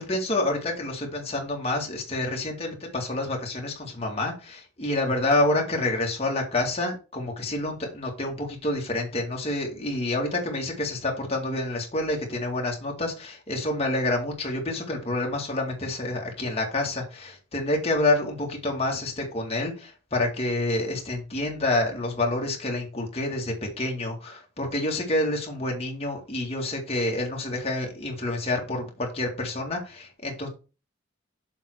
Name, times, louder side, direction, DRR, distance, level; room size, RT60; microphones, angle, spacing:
voice 1, 0.0-30.5, left 2 dB, 30° left, 2.1 m, -28 dB
7.2 x 3.7 x 6.0 m
head